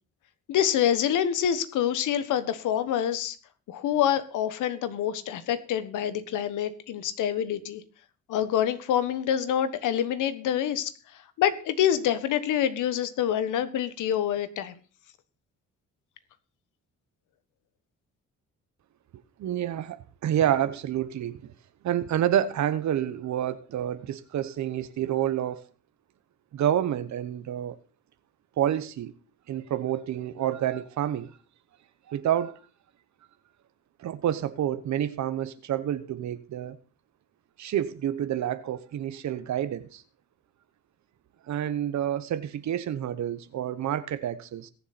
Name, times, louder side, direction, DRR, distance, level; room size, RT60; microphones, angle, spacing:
voice 1, 0.5-3.4 3.7-7.8 8.3-14.7, left 10 dB, 85° left, 1.4 m, -26 dB
voice 2, 19.4-21.5 21.8-25.6 26.5-27.8 28.6-29.1 29.5-31.3 32.1-32.6 34.0-36.8 37.6-40.0 41.5-44.7, right 11 dB, 65° right, 1.1 m, -28 dB
21.5 x 7.2 x 4.2 m
cardioid pair, 90°, 30 cm